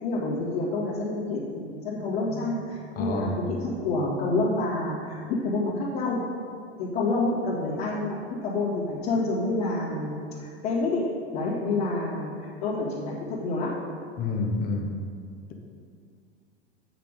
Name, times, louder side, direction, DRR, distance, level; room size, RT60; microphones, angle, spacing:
voice 1, 0.0-6.3 6.8-8.2 8.4-11.1 11.3-13.7, left 2 dB, 45° left, -9 dB, 2.1 m, -28 dB
voice 2, 2.3-3.4 14.2-15.0 15.5-15.6, left 3 dB, 25° left, 3 dB, 1.1 m, -30 dB
8.5 x 6.0 x 5.1 m, 2.2 s
figure-of-eight pair, 90°, 33 cm